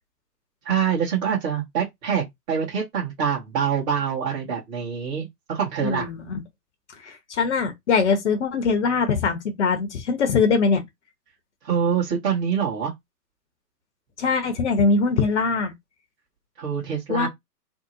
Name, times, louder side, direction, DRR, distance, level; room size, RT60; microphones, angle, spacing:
voice 1, 0.6-6.1 11.6-12.9 16.6-17.3, right 7 dB, 25° right, 0.9 m, -25 dB
voice 2, 5.8-6.3 7.0-10.8 14.2-15.7 17.1-17.3, left 4 dB, 45° left, 0.8 m, -22 dB
2.7 x 2.0 x 3.9 m
figure-of-eight pair, 125°, 49 cm